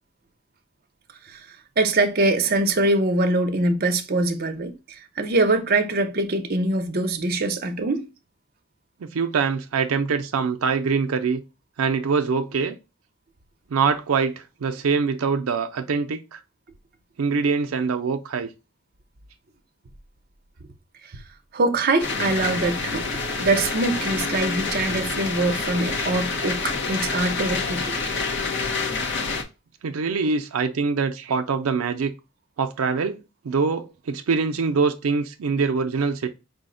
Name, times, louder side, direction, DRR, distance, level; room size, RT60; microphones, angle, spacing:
voice 1, 1.8-8.1 21.5-27.9, right 2 dB, 45° right, 0.6 m, -23 dB
voice 2, 9.1-11.4 11.8-12.7 13.7-16.4 17.2-18.5 29.8-32.1 32.6-36.3, right 5 dB, 90° right, 0.5 m, -24 dB
sound 1, 22.0-29.4, left 4 dB, 60° left, 0.8 m, -27 dB
5.0 x 2.1 x 3.7 m
head